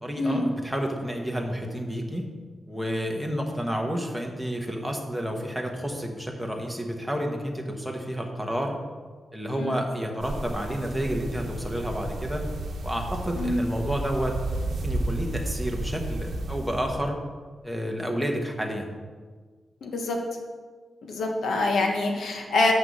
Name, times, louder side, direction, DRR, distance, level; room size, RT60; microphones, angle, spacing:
voice 1, 0.0-2.2 2.7-8.8 9.3-12.4 12.8-14.3 14.7-17.2 17.6-18.9, equal, ahead, 1 dB, 1.0 m, -30 dB
sound 1, 10.2-17.0, right 2 dB, 65° right, 0.9 m, -32 dB
voice 2, 19.8-20.2 21.1-22.7, left 2 dB, 85° left, 2 dB, 1.3 m, -25 dB
6.2 x 5.9 x 7.0 m, 1.5 s
wide cardioid pair, 150°, 0 cm